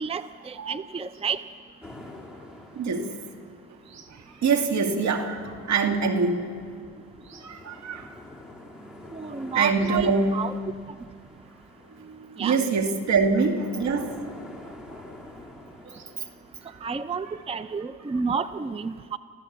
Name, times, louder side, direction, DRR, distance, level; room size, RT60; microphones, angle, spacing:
voice 1, 0.0-1.4 9.1-10.6 12.4-12.6 16.8-19.2, right 5 dB, 20° right, 12 dB, 0.6 m, -31 dB
sound 1, 1.8-17.5, left 2 dB, ahead, 3.0 m, -48 dB
voice 2, 2.7-3.1 3.9-6.5 7.3-8.1 9.5-10.4 11.9-14.8 15.8-16.2 16.6-16.7, right 4 dB, 70° right, 4 dB, 2.5 m, -25 dB
29.5 x 14.5 x 7.4 m, 2.2 s
cardioid pair, 90°, 30 cm